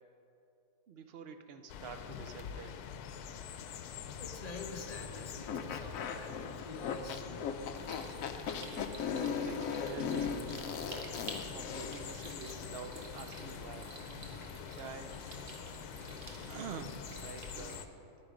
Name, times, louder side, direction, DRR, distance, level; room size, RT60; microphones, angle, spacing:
voice 1, 0.9-2.8 9.2-11.1 11.5-13.9 14.5-15.2 16.5-17.9, right 5 dB, 60° right, 8 dB, 0.6 m, -47 dB
sound 1, 1.7-17.9, left 8 dB, 90° left, 1.1 m, -46 dB
voice 2, 4.1-7.8, left 3 dB, 35° left, 2 dB, 0.8 m, -47 dB
sound 2, 5.5-12.1, left 6 dB, 70° left, 1.0 m, -37 dB
sound 3, 7.7-17.8, right 1 dB, 35° right, 1.3 m, -49 dB
10.5 x 9.8 x 5.1 m, 2.8 s
omnidirectional pair, 1.6 m